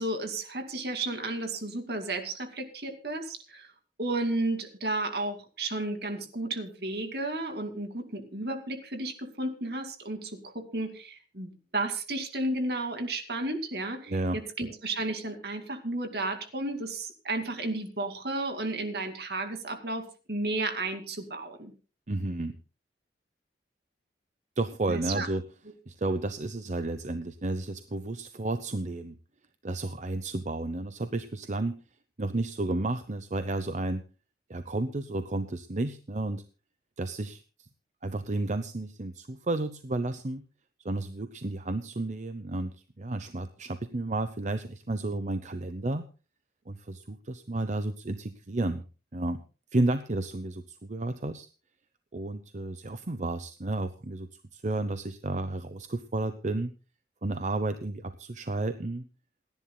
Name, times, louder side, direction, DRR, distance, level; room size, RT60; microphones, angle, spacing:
voice 1, 0.0-3.7 4.0-21.7 24.9-25.3, right 2 dB, 60° right, 6 dB, 2.4 m, -33 dB
voice 2, 14.1-14.4 22.1-22.6 24.6-25.4 25.9-29.2 29.6-31.8 32.2-34.0 34.5-36.4 37.0-37.7 38.0-40.4 40.8-46.1 46.7-48.8 49.1-49.4 49.7-51.5 52.1-56.7 57.2-59.1, right 2 dB, 45° right, 10 dB, 0.7 m, -32 dB
28.0 x 10.5 x 2.3 m, 0.35 s
head